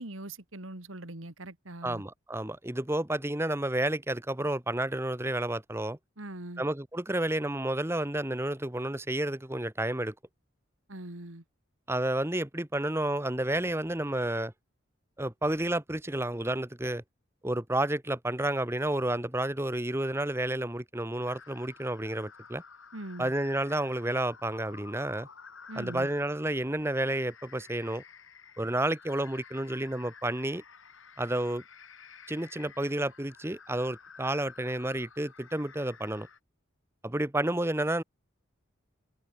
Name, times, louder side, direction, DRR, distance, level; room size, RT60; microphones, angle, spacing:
voice 1, 0.0-2.0 6.2-6.6 10.9-11.4 22.9-23.3 25.7-26.1, right 1 dB, 85° right, 2.7 m, -41 dB
voice 2, 1.8-6.0 6.6-10.1 11.9-14.5 15.2-17.0 17.4-22.6 23.2-25.3 25.8-28.0 28.6-30.6 31.2-31.6 32.3-36.3 37.0-38.0, right 1 dB, 10° right, 1.1 m, -30 dB
sound 1, 21.2-36.4, left 6 dB, 85° left, 6.5 m, -52 dB
head